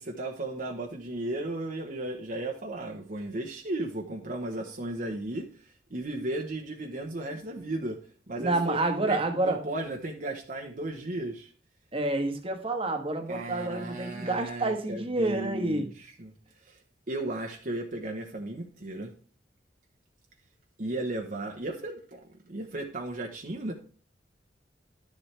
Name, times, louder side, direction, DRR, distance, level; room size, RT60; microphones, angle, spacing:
voice 1, 0.0-8.0 8.3-8.8 9.1-11.5 13.3-16.3 16.6-16.8 17.1-19.1 20.8-23.7, right 2 dB, 50° right, 1.1 m, -35 dB
voice 2, 8.4-9.6 11.9-15.9, right 2 dB, 30° right, 1.3 m, -28 dB
11.5 x 7.4 x 3.3 m
head